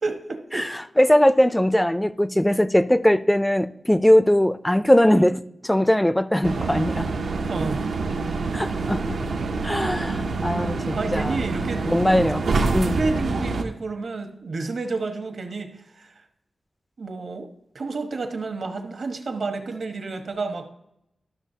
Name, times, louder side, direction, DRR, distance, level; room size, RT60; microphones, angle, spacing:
voice 1, 0.0-0.7 7.5-7.9 10.9-11.9 12.9-16.1 17.0-17.5 17.7-20.7, right 3 dB, 65° right, 5 dB, 1.1 m, -30 dB
voice 2, 1.0-7.1 8.5-9.2 9.6-11.4 11.8-12.4 12.7-13.0, equal, 10° left, 14 dB, 0.3 m, -20 dB
sound 1, 6.4-13.6, right 3 dB, 85° right, 0.6 m, -26 dB
12.0 x 6.6 x 2.7 m, 0.79 s
wide cardioid pair, 105°, 0 cm